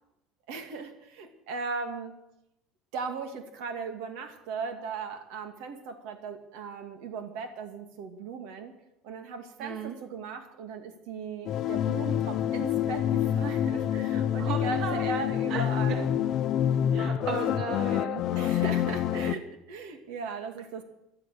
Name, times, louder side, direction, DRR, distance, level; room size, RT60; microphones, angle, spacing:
voice 1, 0.5-2.1 2.9-8.7 9.0-16.1 17.2-17.4 18.3-20.8, right 5 dB, 70° right, 6 dB, 2.4 m, -37 dB
voice 2, 9.6-10.0 14.4-15.0 15.5-16.1 16.9-18.2, right 5 dB, 45° right, 4 dB, 2.0 m, -35 dB
sound 1, 11.5-19.4, left 10 dB, 40° left, 0.6 m, -27 dB
18.0 x 12.0 x 6.8 m, 0.85 s
cardioid pair, 170°, 0 cm